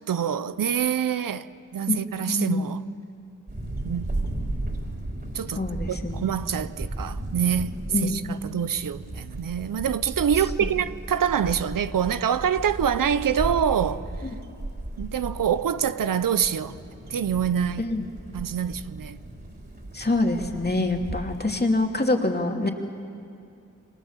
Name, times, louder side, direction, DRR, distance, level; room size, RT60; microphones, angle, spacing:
voice 1, 0.1-1.5 1.7-2.8 3.8-4.1 5.3-5.6 5.9-7.7 8.0-14.0 15.0-16.8 17.1-17.9 18.3-19.2, right 8 dB, 80° right, 0.8 m, -25 dB
voice 2, 2.2-2.7 5.5-6.3 7.9-8.2 10.6-10.7 14.2-14.3 17.8-18.0 19.9-22.7, left 2 dB, 30° left, 2.8 m, -25 dB
sound 1, 3.5-21.6, right 1 dB, 30° right, 4.3 m, -35 dB
28.5 x 25.5 x 7.4 m
cardioid pair, 65°, 33 cm